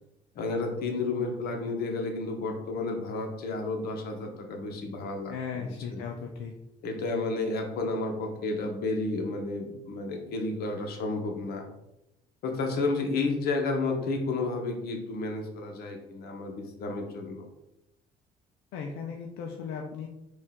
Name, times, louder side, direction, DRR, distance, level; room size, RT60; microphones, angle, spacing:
voice 1, 0.3-6.0 6.8-11.7 12.4-17.5, left 3 dB, 65° left, 3 dB, 0.9 m, -31 dB
voice 2, 5.3-6.5 18.7-20.1, left 6 dB, 90° left, 1 dB, 0.5 m, -36 dB
4.4 x 2.5 x 3.6 m, 0.87 s
cardioid pair, 110°, 17 cm